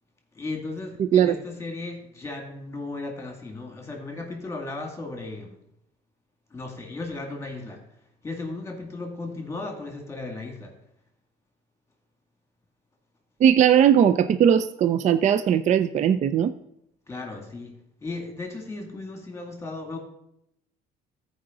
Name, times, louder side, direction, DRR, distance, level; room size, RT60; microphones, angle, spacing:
voice 1, 0.3-5.6 6.5-7.8 8.2-10.7 17.1-20.0, left 3 dB, 15° left, 2 dB, 2.1 m, -36 dB
voice 2, 1.0-1.4 13.4-16.5, right 9 dB, 45° right, 12 dB, 0.4 m, -19 dB
14.0 x 4.9 x 3.8 m, 0.78 s
cardioid pair, 110°, 17 cm